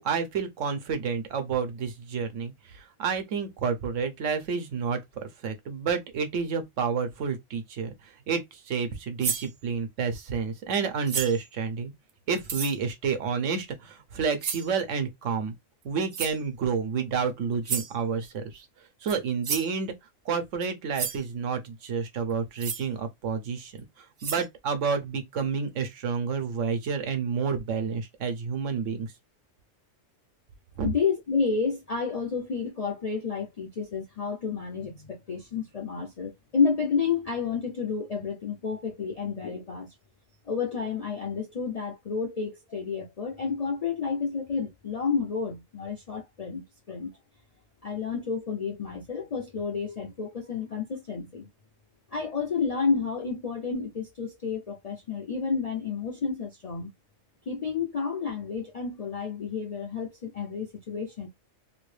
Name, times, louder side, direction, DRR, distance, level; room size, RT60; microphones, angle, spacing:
voice 1, 0.0-11.9 12.3-15.5 15.8-18.7 19.0-19.9 20.2-23.7 24.0-29.1 30.8-30.9, right 6 dB, 75° right, 1.1 m, -30 dB
sound 1, 9.2-9.5 11.1-11.5 12.4-12.8 14.4-14.7 16.1-16.4 17.6-17.9 19.1-19.2 19.4-19.7 20.6-20.7 20.9-21.2 22.6-22.9 23.8-23.9 24.2-24.5, right 6 dB, 55° right, 0.4 m, -32 dB
voice 2, 30.8-39.9 40.5-47.2 47.8-51.5 52.1-56.9 57.5-61.3, left 5 dB, 55° left, 0.4 m, -30 dB
3.0 x 2.6 x 3.2 m
omnidirectional pair, 1.3 m